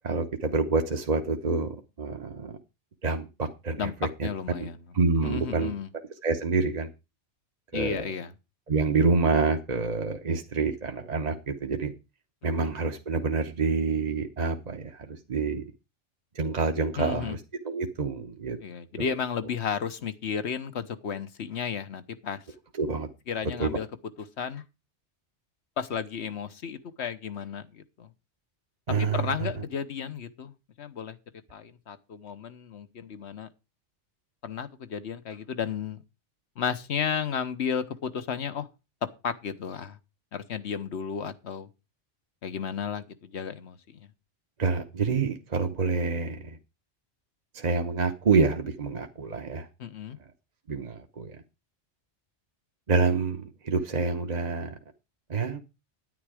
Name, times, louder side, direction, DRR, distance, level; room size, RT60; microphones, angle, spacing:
voice 1, 0.0-2.6 3.0-3.9 4.2-4.3 4.6-4.7 4.9-5.7 6.2-6.9 7.7-8.1 8.7-11.9 12.4-15.6 16.4-18.6 19.0-19.1 22.8-23.1 23.6-23.8 28.9-29.5 44.6-46.6 47.5-49.7 50.7-51.4 52.9-54.8 55.3-55.6, right 4 dB, 40° right, 1.0 m, -27 dB
voice 2, 4.2-4.8 5.2-5.9 7.7-8.3 12.6-12.7 17.0-17.3 18.6-22.4 23.3-23.9 24.4-24.6 25.8-28.1 29.0-30.5 30.8-31.2 31.5-33.5 34.4-36.0 36.6-38.7 39.0-40.0 40.3-41.7 42.4-44.0 49.8-50.2, left 7 dB, 70° left, 1.2 m, -33 dB
10.0 x 9.8 x 4.9 m
omnidirectional pair, 1.2 m